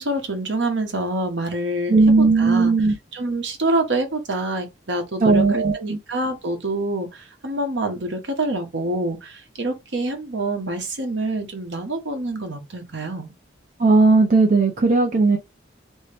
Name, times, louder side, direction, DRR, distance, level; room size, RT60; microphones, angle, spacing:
voice 1, 0.0-2.7 3.1-13.3, right 1 dB, 70° right, 1.0 m, -26 dB
voice 2, 1.9-2.9 5.2-6.0 13.8-15.4, right 3 dB, 45° right, 0.5 m, -16 dB
3.1 x 2.7 x 3.3 m
head